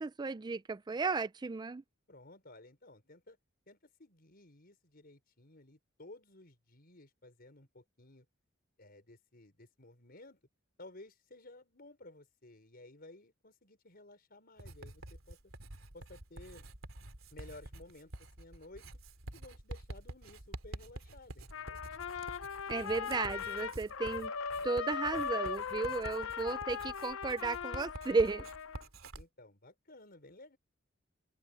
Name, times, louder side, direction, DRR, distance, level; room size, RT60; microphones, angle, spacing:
voice 1, 0.0-1.8 22.7-24.3 24.6-28.5, right 4 dB, 20° right, 0.4 m, -34 dB
voice 2, 2.1-3.4 3.7-8.3 8.8-10.4 10.8-15.4 15.9-16.6 17.3-18.9 19.3-21.8 29.1-30.6, left 2 dB, 50° left, 5.0 m, -55 dB
Writing, 14.6-29.2, right 1 dB, 90° right, 3.0 m, -48 dB
Trumpet, 21.5-28.8, left 7 dB, 75° left, 0.6 m, -39 dB
open air
head